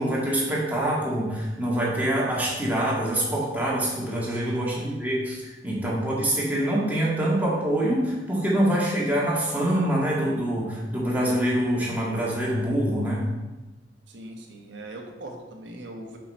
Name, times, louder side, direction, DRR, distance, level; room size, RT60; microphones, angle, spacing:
voice 1, 0.0-5.4 5.6-13.3, right 1 dB, 10° right, -6 dB, 2.0 m, -25 dB
voice 2, 4.3-4.7 14.1-16.2, right 1 dB, 85° right, 2 dB, 1.2 m, -40 dB
5.9 x 5.9 x 4.3 m, 1.1 s
head